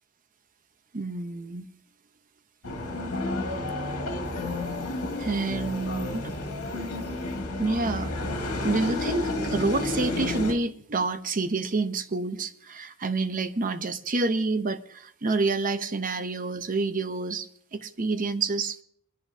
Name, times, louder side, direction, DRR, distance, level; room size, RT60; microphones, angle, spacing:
voice 1, 0.9-1.7 4.4-4.5 5.2-6.3 7.6-8.1 8.6-18.8, right 3 dB, 40° right, 0.8 m, -28 dB
sound 1, 2.6-10.5, left 2 dB, 80° left, 1.9 m, -31 dB
22.0 x 11.0 x 2.7 m
head